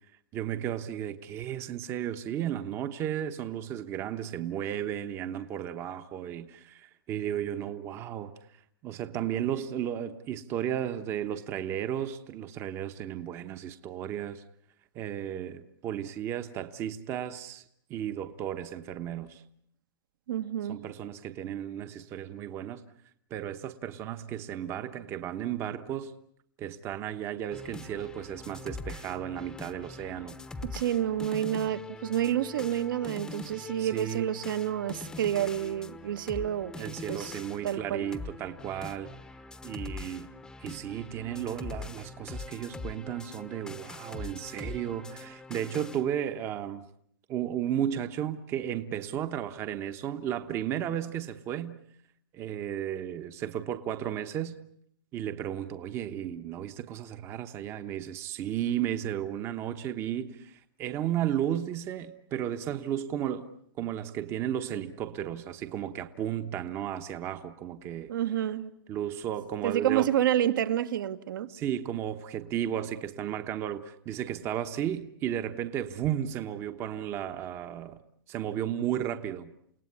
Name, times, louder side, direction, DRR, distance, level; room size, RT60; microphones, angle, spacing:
voice 1, 0.3-8.3 8.8-14.4 14.9-17.6 17.9-19.4 20.7-22.8 23.3-26.1 26.6-30.3 33.8-34.3 36.8-39.1 39.6-40.3 40.6-46.8 47.3-51.8 52.3-54.6 55.1-63.5 63.8-68.1 68.9-70.1 71.5-78.0 78.3-79.5, right 10 dB, 20° right, 1.0 m, -34 dB
voice 2, 20.3-20.9 30.7-36.7 37.1-37.4 37.6-38.0 68.1-68.7 69.6-71.5, right 11 dB, 65° right, 1.6 m, -29 dB
sound 1, 27.5-46.0, left 3 dB, 5° left, 1.0 m, -43 dB
29.5 x 18.0 x 9.6 m
hypercardioid pair, 165°, 12 cm